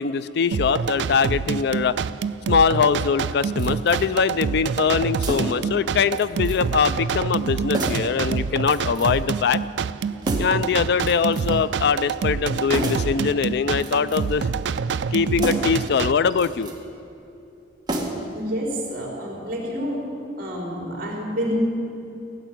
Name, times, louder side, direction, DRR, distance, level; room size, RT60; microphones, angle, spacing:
voice 1, 0.0-2.0 2.5-9.6 10.4-14.5 15.1-16.7, left 6 dB, 60° left, 15 dB, 0.4 m, -22 dB
sound 1, 0.5-16.1, right 6 dB, 70° right, 0.4 m, -27 dB
sound 2, 3.6-4.0 5.2-5.7 6.1-6.6 6.9-7.0 7.7-8.1 8.7-9.2 10.2-10.7 11.0-11.6 12.7-13.1 13.7-14.4 15.4-15.8 16.3-16.8 17.9-18.4 18.7-18.8, right 1 dB, 25° right, 1.7 m, -30 dB
sound 3, 12.3-17.1, left 1 dB, 40° left, 3.2 m, -46 dB
voice 2, 18.3-20.0 20.4-21.7, equal, 50° right, -2 dB, 4.0 m, -27 dB
16.5 x 8.0 x 9.1 m, 2.8 s
head